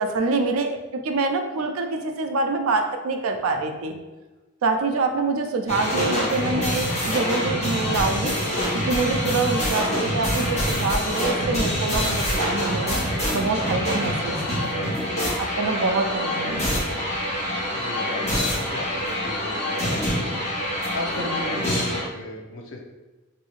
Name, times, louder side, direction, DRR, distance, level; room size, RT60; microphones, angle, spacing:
voice 1, 0.0-3.9 4.6-8.4 8.7-13.0 13.3-15.0 15.4-16.9, right 3 dB, 90° right, 5 dB, 0.4 m, -25 dB
sound 1, 5.7-22.0, equal, 35° left, 1.2 m, -25 dB
voice 2, 17.7-20.4 20.9-22.8, left 2 dB, 75° left, 0 dB, 0.6 m, -35 dB
3.2 x 2.6 x 3.1 m, 1.2 s
head